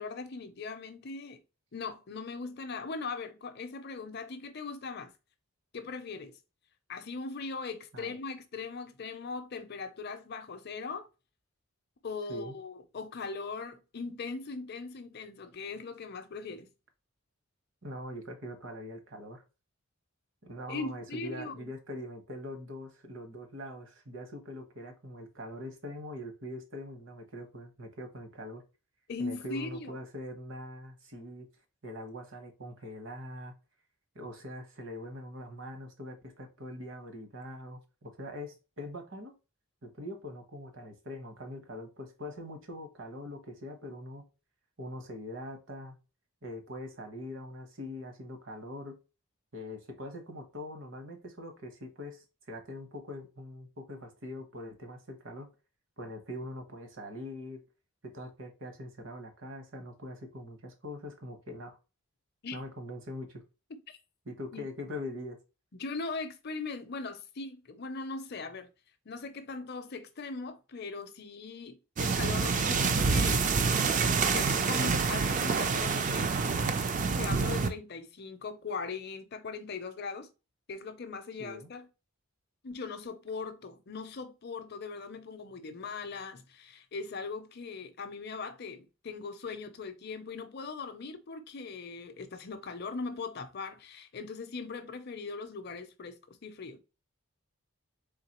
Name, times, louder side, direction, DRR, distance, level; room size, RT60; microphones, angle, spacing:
voice 1, 0.0-1.4 1.7-5.1 5.7-6.4 6.9-11.1 12.0-16.7 20.7-21.7 29.1-30.0 62.4-62.6 63.7-64.0 64.5-64.7 65.7-68.7 69.1-73.4 74.3-76.3 77.1-80.3 80.7-81.9 82.6-96.8, left 4 dB, 45° left, 0.5 m, -40 dB
voice 2, 17.8-19.4 20.4-28.6 29.2-31.5 31.8-33.5 34.1-39.3 39.8-44.3 44.8-46.0 46.4-49.0 49.5-55.5 56.0-57.6 58.0-61.8 62.5-63.4 64.2-65.4 81.4-81.7, left 1 dB, 60° right, 1.0 m, -43 dB
sound 1, 72.0-77.7, right 4 dB, 35° right, 0.4 m, -27 dB
3.8 x 3.5 x 2.9 m
head